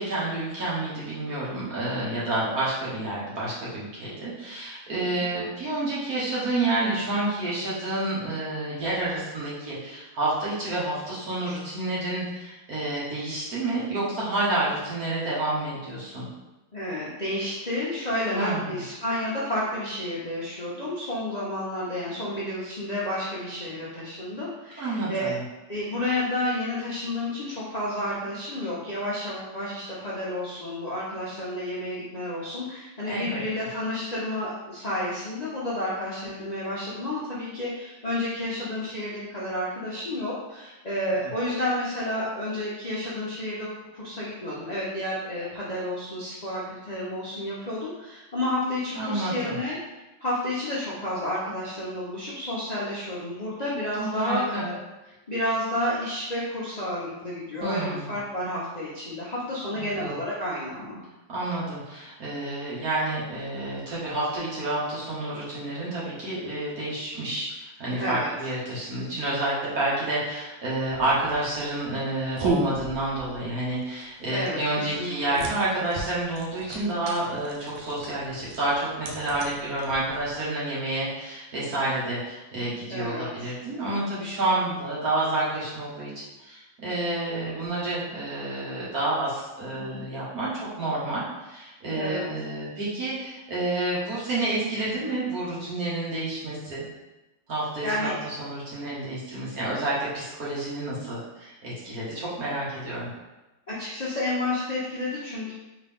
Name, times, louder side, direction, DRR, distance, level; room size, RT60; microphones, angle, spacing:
voice 1, 0.0-16.3 18.3-18.7 24.8-25.4 33.1-33.4 49.0-49.6 53.9-54.6 57.6-58.1 59.8-60.0 61.3-86.1 86.4-96.8 97.5-103.1, right 2 dB, 50° right, -8 dB, 1.9 m, -29 dB
voice 2, 4.9-5.2 16.7-25.3 25.7-49.8 50.2-54.8 55.3-61.0 68.0-68.3 74.3-75.5 82.9-83.5 89.8-90.0 91.9-92.2 97.8-98.1 103.7-105.5, left 1 dB, 70° left, -7 dB, 0.4 m, -31 dB
sound 1, 70.9-80.4, right 3 dB, 85° right, 1.5 m, -35 dB
4.0 x 3.6 x 3.5 m, 1.1 s
omnidirectional pair, 2.1 m